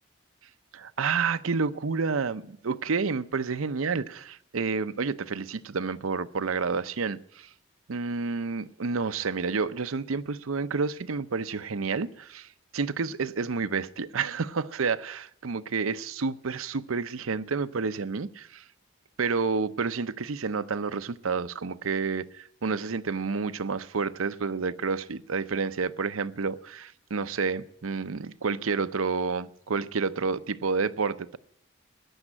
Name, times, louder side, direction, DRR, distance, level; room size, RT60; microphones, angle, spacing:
voice 1, 0.7-7.5 7.9-18.6 19.2-31.4, right 4 dB, 80° right, 0.7 m, -30 dB
14.5 x 10.0 x 8.7 m
head